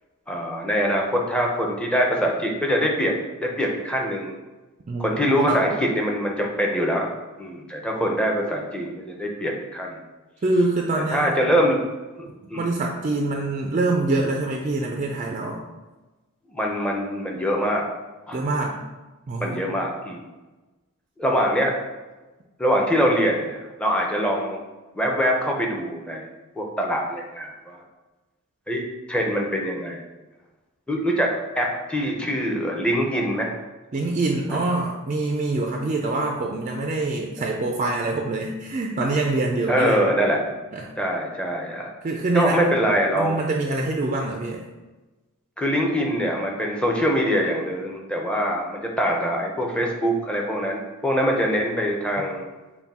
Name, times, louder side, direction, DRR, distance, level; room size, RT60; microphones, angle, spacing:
voice 1, 0.3-4.3 5.0-7.1 7.4-10.0 11.1-11.8 12.1-12.7 16.5-17.8 18.3-18.4 19.4-20.2 21.2-21.7 22.6-24.6 24.9-26.3 26.6-27.8 28.7-30.0 30.9-31.3 31.6-33.5 34.5-34.6 39.7-40.4 41.0-41.9 42.3-43.4 45.6-52.4, equal, 5° left, -1 dB, 0.6 m, -24 dB
voice 2, 4.9-5.7 10.4-11.3 12.6-15.6 18.3-18.8 19.3-19.7 33.9-40.2 40.7-40.9 42.0-42.7 43.2-44.6, right 2 dB, 35° right, 1 dB, 0.4 m, -25 dB
5.7 x 2.2 x 4.2 m, 1.2 s
head